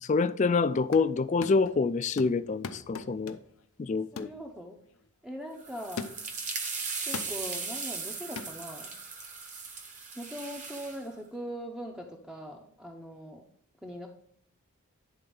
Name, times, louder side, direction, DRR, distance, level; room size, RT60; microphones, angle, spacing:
voice 1, 0.0-3.4 3.8-4.3, left 4 dB, 30° left, 0.3 m, -26 dB
sound 1, 0.6-1.1 1.4-1.8 2.2-3.6 4.2-4.4 4.9-5.0 6.0-6.4 7.1-7.4 8.4-8.6, left 5 dB, 65° left, 0.6 m, -40 dB
voice 2, 4.1-4.8 5.2-6.1 7.1-8.9 10.2-13.5 13.8-14.1, equal, 5° right, 0.6 m, -41 dB
sound 2, 5.6-11.0, right 4 dB, 35° right, 1.0 m, -38 dB
10.0 x 3.9 x 5.2 m
head